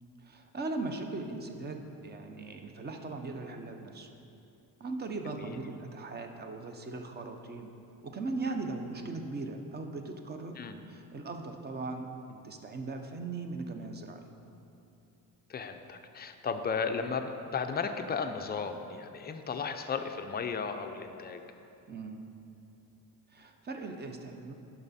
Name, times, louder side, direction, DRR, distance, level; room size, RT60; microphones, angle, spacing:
voice 1, 0.2-4.1 4.8-7.7 8.0-10.6 10.9-14.2 21.9-22.2 23.3-24.5, right 3 dB, 25° right, 5 dB, 0.7 m, -39 dB
voice 2, 15.5-21.4, left 5 dB, 25° left, 6 dB, 0.4 m, -35 dB
10.5 x 6.0 x 4.1 m, 2.7 s
cardioid pair, 130°, 41 cm